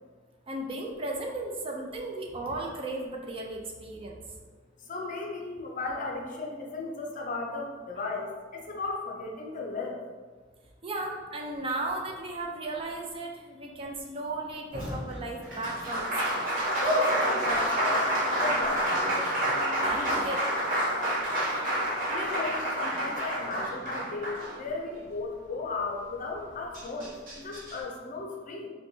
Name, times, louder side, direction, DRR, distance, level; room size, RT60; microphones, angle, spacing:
voice 1, 0.5-4.2 10.8-16.6 19.8-20.6, right 2 dB, 30° right, 1 dB, 0.4 m, -35 dB
voice 2, 4.8-10.0 17.0-19.2 21.1-21.3 22.1-28.7, left 3 dB, 45° left, 0 dB, 0.5 m, -35 dB
Applause, 14.7-25.0 26.4-26.5 26.7-27.8, right 1 dB, 50° right, 0.9 m, -28 dB
4.4 x 2.2 x 2.6 m, 1.4 s
head